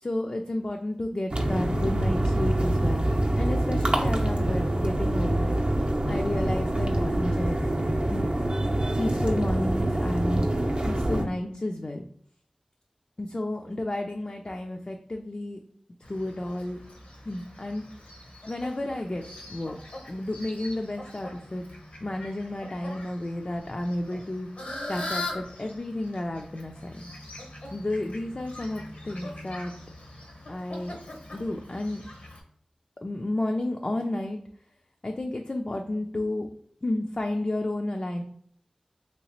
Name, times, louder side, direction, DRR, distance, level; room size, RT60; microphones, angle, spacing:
voice 1, 0.0-3.1 3.3-5.6 6.1-7.6 8.1-8.4 9.0-10.5 10.8-12.1 13.2-15.6 16.1-16.8 17.3-17.8 18.5-19.8 20.1-21.6 22.0-24.5 24.9-27.2 27.7-29.7 30.5-31.0 31.3-32.0 33.0-34.4 35.0-36.5 36.8-38.2, left 1 dB, 40° left, 3 dB, 0.3 m, -31 dB
sound 1, 1.3-11.3, right 1 dB, 50° right, 0.6 m, -25 dB
Fowl, 16.0-32.4, left 2 dB, 75° left, 0.8 m, -42 dB
3.1 x 2.9 x 2.9 m, 0.64 s
wide cardioid pair, 50°, 2 cm